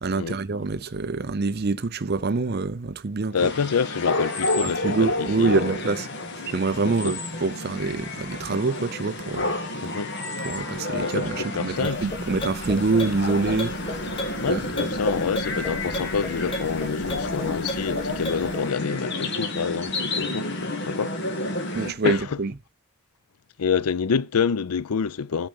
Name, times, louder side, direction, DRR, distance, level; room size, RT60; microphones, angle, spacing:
voice 1, 0.0-3.5 4.6-6.1 6.5-9.5 10.4-13.7 14.5-14.6 21.7-22.5, right 3 dB, 45° right, 0.5 m, -26 dB
voice 2, 3.3-5.6 6.8-7.1 9.8-10.1 11.0-12.1 14.4-21.2 22.0-22.4 23.6-25.5, left 6 dB, 85° left, 0.5 m, -27 dB
sound 1, 3.4-21.9, left 2 dB, 50° left, 2.1 m, -30 dB
sound 2, 11.7-18.7, left 1 dB, 25° left, 2.0 m, -35 dB
9.8 x 5.1 x 6.4 m
head